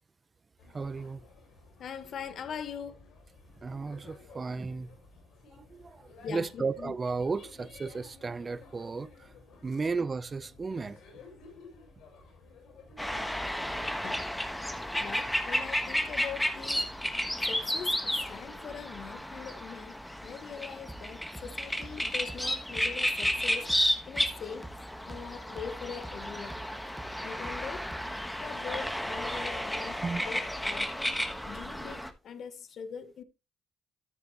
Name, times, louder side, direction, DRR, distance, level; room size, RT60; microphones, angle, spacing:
sound 1, 0.6-19.2, left 3 dB, 85° left, 5.9 m, -54 dB
voice 1, 0.7-1.2 3.6-4.9 5.7-9.3 9.6-11.0 13.8-13.9 14.8-15.0 30.0-30.2, right 4 dB, 30° right, 0.6 m, -34 dB
voice 2, 1.8-3.1 6.2-7.0 14.0-14.3 15.0-16.9 17.4-23.7 24.1-24.7 25.1-26.6 27.2-27.9 28.4-31.0 31.5-33.2, left 7 dB, 60° left, 1.4 m, -42 dB
sound 2, 13.0-32.1, left 1 dB, 5° left, 1.4 m, -33 dB
sound 3, 20.9-28.4, right 2 dB, 10° right, 1.4 m, -48 dB
13.5 x 6.8 x 3.0 m
cardioid pair, 90°, 0 cm